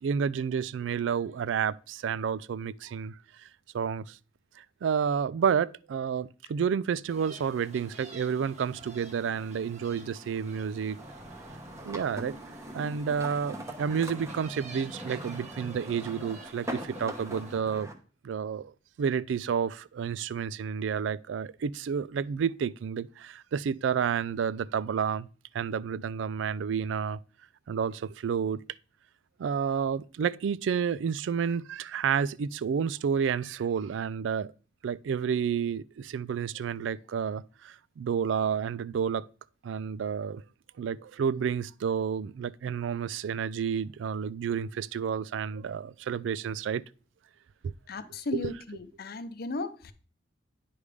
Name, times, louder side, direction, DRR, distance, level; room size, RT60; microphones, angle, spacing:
voice 1, 0.0-3.2 3.7-4.2 4.8-11.0 11.8-12.3 12.7-17.9 18.2-18.7 19.0-25.3 25.5-27.2 27.7-28.6 29.4-34.5 34.8-39.3 39.6-40.4 40.8-46.8 47.6-47.7 48.3-48.4, right 7 dB, 80° right, 0.3 m, -30 dB
sound 1, 7.1-17.6, right 2 dB, 40° right, 1.2 m, -49 dB
sound 2, 11.0-17.9, right 1 dB, 15° right, 0.9 m, -42 dB
voice 2, 47.9-49.9, left 3 dB, 55° left, 0.6 m, -35 dB
9.6 x 3.5 x 4.9 m
head